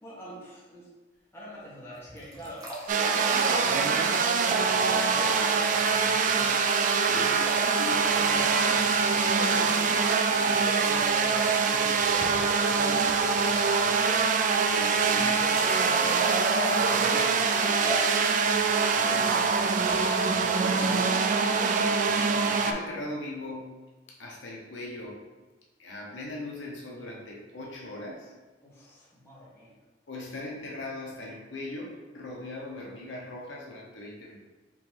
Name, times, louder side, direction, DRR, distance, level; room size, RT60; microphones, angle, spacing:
voice 1, 0.0-0.9 1.3-3.9 4.5-6.7 7.1-9.8 10.4-14.4 15.0-17.5 18.9-19.3 28.6-29.7, equal, 15° left, -8 dB, 1.4 m, -42 dB
sound 1, 1.9-5.7 5.9-6.0 6.3-6.4 8.1-8.5 9.4-9.6 10.9-11.2 15.0-18.1 19.6-20.0, equal, 20° right, 0.8 m, -38 dB
sound 2, 2.9-22.7, right 5 dB, 45° right, 0.3 m, -24 dB
voice 2, 7.6-8.0 9.4-10.6 14.7-15.5 17.1-18.2 19.0-19.5 20.5-21.2 22.0-23.8 24.1-25.2 25.8-28.3 30.1-34.5, left 1 dB, 90° left, -2 dB, 0.9 m, -40 dB
4.5 x 3.0 x 3.7 m, 1.2 s
head